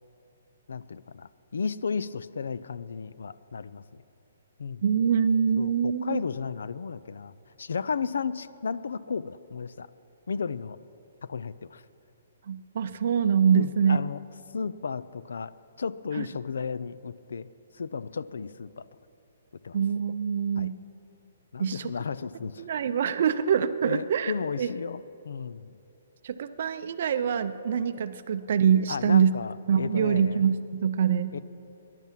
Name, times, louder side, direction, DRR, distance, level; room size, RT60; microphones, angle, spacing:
voice 1, 0.7-4.0 4.6-4.8 5.6-7.3 7.6-9.9 10.3-10.8 11.2-11.8 13.5-14.2 14.5-17.5 17.8-18.9 19.6-19.8 20.6-20.7 21.5-22.6 23.9-25.7 28.9-30.4 31.3-31.4, left 5 dB, 80° left, 16 dB, 0.4 m, -34 dB
voice 2, 4.8-6.2 12.5-14.0 16.1-16.2 19.7-20.7 21.6-21.9 22.6-24.3 24.6-24.7 26.2-29.3 29.7-31.3, right 7 dB, 40° right, 11 dB, 0.5 m, -24 dB
14.0 x 11.0 x 7.4 m, 2.8 s
hypercardioid pair, 175°, 0 cm